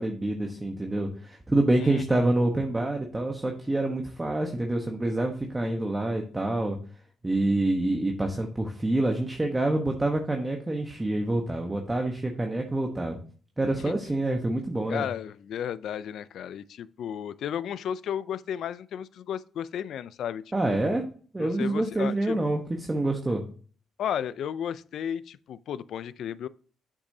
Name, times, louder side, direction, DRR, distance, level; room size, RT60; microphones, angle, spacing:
voice 1, 0.0-6.8 7.2-13.2 13.6-15.1 20.5-21.0 21.3-22.6 22.9-23.4, right 2 dB, 15° right, 1.1 m, -27 dB
voice 2, 1.7-2.3 13.8-13.9 14.9-20.4 20.7-21.0 21.4-22.4 24.0-26.5, left 9 dB, 70° left, 0.4 m, -34 dB
7.9 x 6.2 x 2.7 m
cardioid pair, 90°, 0 cm